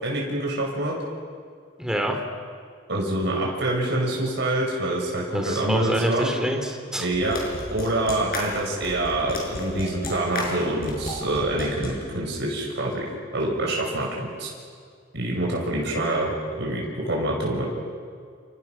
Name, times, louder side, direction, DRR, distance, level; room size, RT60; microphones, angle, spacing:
voice 1, 0.0-0.9 2.9-6.3 7.0-7.4 7.7-13.0 13.3-14.5 15.1-17.7, right 1 dB, 65° right, -2 dB, 5.8 m, -26 dB
voice 2, 1.8-2.2 5.3-7.1, right 1 dB, 5° right, 2 dB, 3.6 m, -26 dB
sound 1, 7.1-11.9, left 2 dB, 50° left, 6.1 m, -32 dB
29.5 x 28.5 x 6.1 m, 2.1 s
head